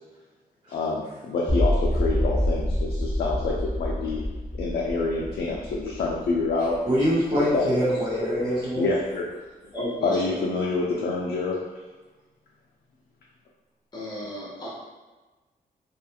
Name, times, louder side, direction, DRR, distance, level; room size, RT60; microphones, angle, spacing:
voice 1, 0.7-4.2 4.6-6.8 7.5-7.9 8.7-9.2 10.0-11.6, left 3 dB, 85° left, -4 dB, 0.4 m, -27 dB
sound 1, 1.5-7.6, equal, 5° right, 0.4 m, -27 dB
voice 2, 6.8-8.9, equal, 40° right, -12 dB, 0.8 m, -24 dB
voice 3, 9.7-10.4 13.9-14.7, equal, 25° left, -7 dB, 0.9 m, -33 dB
2.3 x 2.3 x 2.8 m, 1.2 s
wide cardioid pair, 150°, 16 cm